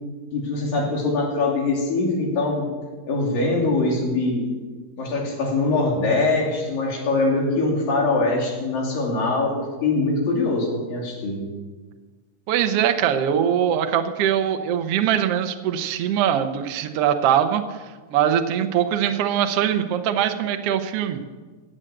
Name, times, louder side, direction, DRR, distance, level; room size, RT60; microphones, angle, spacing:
voice 1, 0.3-2.7 3.1-4.5 5.0-11.4, left 3 dB, 70° left, -2 dB, 4.6 m, -23 dB
voice 2, 12.5-17.8 18.1-21.2, right 9 dB, 75° right, 7 dB, 1.4 m, -22 dB
16.5 x 8.0 x 7.8 m, 1.4 s
omnidirectional pair, 4.1 m